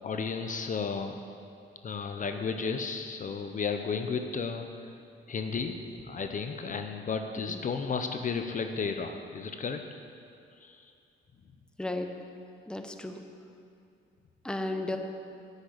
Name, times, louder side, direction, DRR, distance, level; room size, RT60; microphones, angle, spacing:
voice 1, 0.0-1.2 1.8-4.9 5.3-9.8 10.6-10.9, left 5 dB, 40° left, 6 dB, 0.7 m, -33 dB
voice 2, 11.8-12.2 12.7-13.2 14.4-15.0, left 2 dB, 5° left, 5 dB, 0.9 m, -34 dB
9.5 x 6.6 x 8.7 m, 2.5 s
cardioid pair, 90°, 20 cm